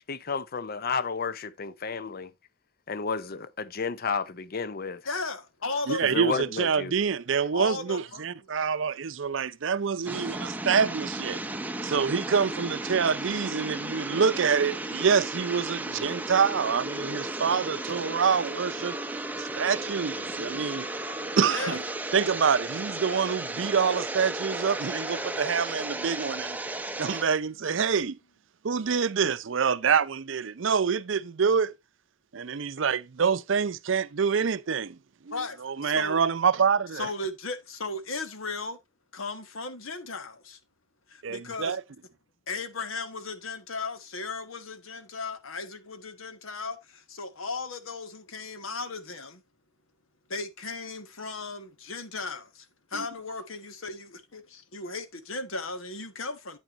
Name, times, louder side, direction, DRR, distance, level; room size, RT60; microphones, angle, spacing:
voice 1, 0.1-2.3 2.9-5.0 6.0-6.9, left 5 dB, 45° left, 0.6 m, -31 dB
voice 2, 5.0-6.1 7.5-8.2 21.5-21.8 35.3-36.2 36.9-38.8 39.1-40.6 41.1-41.8 42.5-49.4 50.3-56.6, left 3 dB, 75° left, 1.3 m, -36 dB
voice 3, 5.9-11.4 11.8-19.0 19.4-20.9 21.4-21.8 22.1-26.6 27.0-28.2 28.6-31.7 32.3-35.0 35.6-37.1 41.2-41.8 52.9-53.0, right 6 dB, 60° right, 0.5 m, -26 dB
sound 1, 10.1-27.2, right 2 dB, 10° right, 0.6 m, -34 dB
9.0 x 8.9 x 2.5 m
head